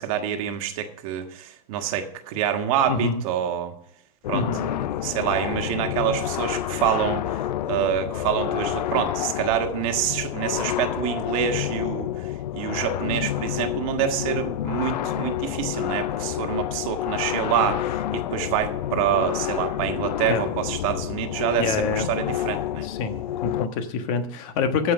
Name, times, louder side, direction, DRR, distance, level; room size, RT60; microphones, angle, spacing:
voice 1, 0.0-3.7 4.3-22.9, right 10 dB, 55° right, 6 dB, 1.5 m, -27 dB
voice 2, 2.9-3.2 4.3-4.6 20.3-20.4 21.6-22.1 22.8-23.1 23.4-24.9, left 5 dB, 50° left, 8 dB, 1.4 m, -26 dB
sound 1, 4.2-23.7, left 12 dB, 90° left, 0.4 m, -29 dB
14.0 x 5.6 x 5.4 m, 0.73 s
supercardioid pair, 135°, 21 cm